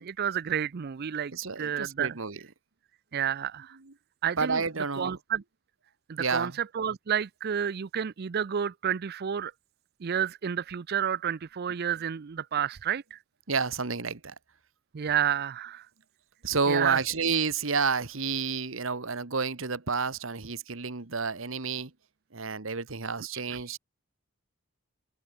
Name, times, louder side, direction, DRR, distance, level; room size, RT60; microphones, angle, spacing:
voice 1, 0.0-1.3 1.6-2.1 3.1-3.8 4.2-4.6 5.0-5.4 6.1-6.5 6.7-9.5 10.0-13.2 14.9-15.9 16.7-17.0 23.5-23.6, right 8 dB, 50° right, 0.5 m, -30 dB
voice 2, 1.3-2.4 3.7-3.9 4.4-5.2 6.2-6.6 13.5-14.3 16.4-21.9 22.3-23.8, right 5 dB, 70° right, 1.4 m, -30 dB
open air
head